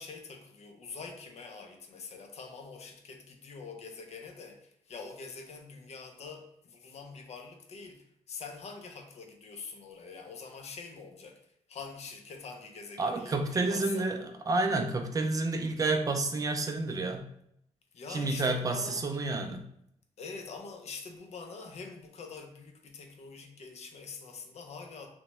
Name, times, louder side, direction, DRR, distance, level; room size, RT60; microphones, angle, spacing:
voice 1, 0.0-14.1 17.9-19.1 20.2-25.1, left 4 dB, 65° left, 4 dB, 0.5 m, -45 dB
voice 2, 13.0-17.2 18.1-19.6, right 2 dB, 30° right, 5 dB, 0.3 m, -30 dB
3.0 x 2.1 x 2.9 m, 0.73 s
wide cardioid pair, 140°, 12 cm